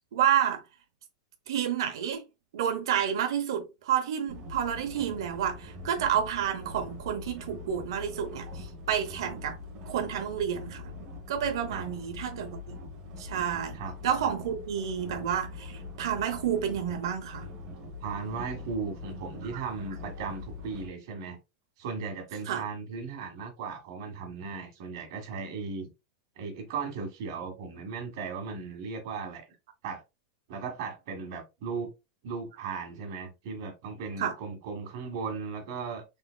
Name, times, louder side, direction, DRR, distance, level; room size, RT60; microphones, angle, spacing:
voice 1, 0.1-0.6 1.5-2.2 2.5-9.6 9.9-10.9 11.3-12.8 13.2-17.5 19.5-19.6 22.5-22.6 34.2-34.3, right 9 dB, 80° right, 0.7 m, -30 dB
sound 1, 4.3-20.9, left 2 dB, 30° right, 0.8 m, -43 dB
voice 2, 18.0-21.4 21.8-25.9 26.3-29.5 29.8-30.0 30.5-31.9 32.2-36.0, right 5 dB, 55° right, 1.5 m, -36 dB
3.8 x 3.5 x 2.2 m
supercardioid pair, 170°, 2 cm